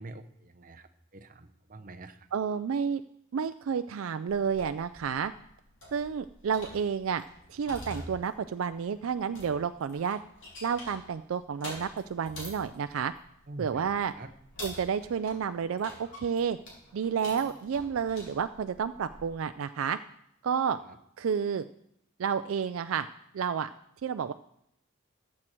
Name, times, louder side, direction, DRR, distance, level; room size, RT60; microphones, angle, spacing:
voice 1, 0.0-2.3 13.5-14.3, right 2 dB, 40° right, 9 dB, 0.7 m, -45 dB
voice 2, 2.3-3.0 3.3-5.3 5.9-7.2 7.5-10.2 10.6-13.1 13.6-14.1 14.6-16.6 16.9-20.0 20.4-20.8 21.2-21.6 22.2-23.1 23.3-23.7 24.0-24.3, right 7 dB, 70° right, 11 dB, 0.4 m, -30 dB
sound 1, 4.3-19.3, left 1 dB, 60° left, 4.1 m, -48 dB
14.0 x 7.4 x 4.5 m, 0.74 s
head